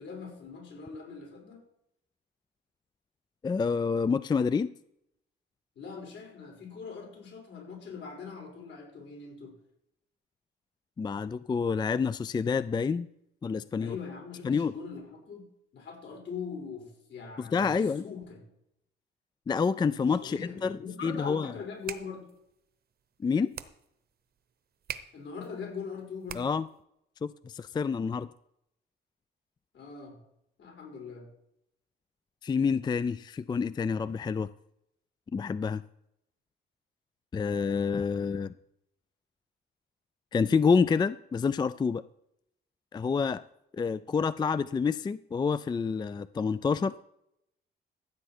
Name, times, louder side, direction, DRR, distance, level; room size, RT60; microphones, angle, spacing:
voice 1, 0.0-1.6 5.7-9.6 13.8-18.4 20.0-22.3 25.1-26.5 29.7-30.2 30.6-31.3, left 5 dB, 70° left, 0 dB, 5.0 m, -42 dB
voice 2, 3.4-4.7 11.0-13.1 13.4-14.0 14.4-14.7 17.4-18.0 19.5-21.5 23.2-23.5 26.3-26.7 27.2-28.3 32.4-34.5 35.3-35.8 37.3-38.5 40.3-42.0 42.9-43.4 43.7-47.0, left 5 dB, 20° left, 16 dB, 0.3 m, -28 dB
sound 1, 21.6-26.8, right 8 dB, 50° right, 0.9 m, -45 dB
14.5 x 7.9 x 4.4 m, 0.78 s
cardioid pair, 90°, 20 cm